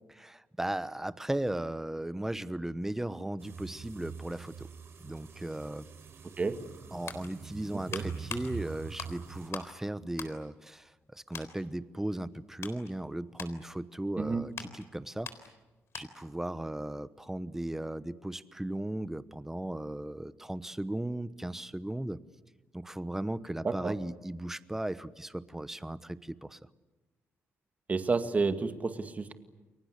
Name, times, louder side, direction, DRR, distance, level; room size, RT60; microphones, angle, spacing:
voice 1, 0.1-4.7 5.0-5.9 6.9-15.3 15.9-22.2 22.7-26.6, right 1 dB, 5° right, 15 dB, 1.0 m, -36 dB
sound 1, 3.4-9.5, right 6 dB, 55° right, 4.4 m, -44 dB
sound 2, 7.0-9.8 10.1-11.0 11.3-11.6 12.1-16.4 16.6-16.8, left 7 dB, 60° left, 3.7 m, -45 dB
voice 2, 27.9-29.3, right 4 dB, 30° right, 8 dB, 2.1 m, -30 dB
29.5 x 23.0 x 8.4 m, 1.2 s
cardioid pair, 105°, 5 cm